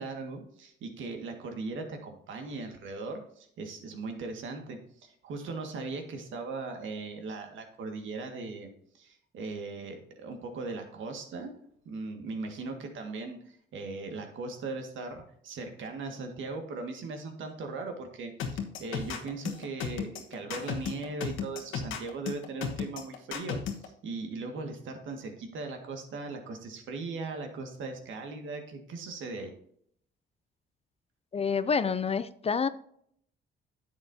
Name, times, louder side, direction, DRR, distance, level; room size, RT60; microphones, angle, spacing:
voice 1, 0.0-11.5 11.8-29.5, right 3 dB, 75° right, 1.9 m, -39 dB
sound 1, 18.4-23.9, left 7 dB, 85° left, 1.3 m, -34 dB
voice 2, 31.3-32.7, left 6 dB, 30° left, 0.5 m, -28 dB
10.5 x 7.4 x 2.7 m
cardioid pair, 90°, 20 cm